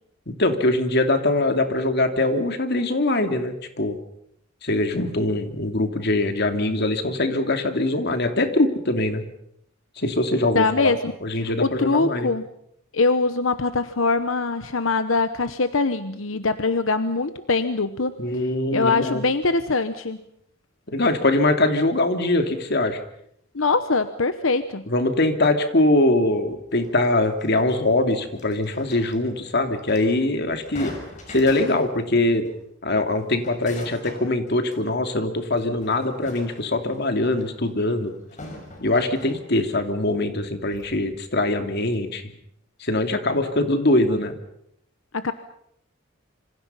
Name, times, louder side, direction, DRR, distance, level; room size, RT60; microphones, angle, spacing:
voice 1, 0.3-4.0 4.6-9.2 10.0-10.9 11.2-12.3 18.2-19.2 20.9-23.0 24.9-30.9 31.3-32.4 32.8-38.1 38.8-42.3 42.8-44.4, left 2 dB, 55° left, 6 dB, 2.8 m, -22 dB
voice 2, 10.5-11.1 11.6-12.4 12.9-18.2 18.7-20.2 23.5-24.8 45.1-45.3, left 3 dB, 85° left, 11 dB, 1.0 m, -22 dB
sound 1, 26.7-32.1 32.5-32.6 33.0-35.1 35.6-39.8 40.2-40.3 40.7-41.0, left 1 dB, 40° left, 6.3 m, -43 dB
27.0 x 26.0 x 5.7 m, 0.73 s
head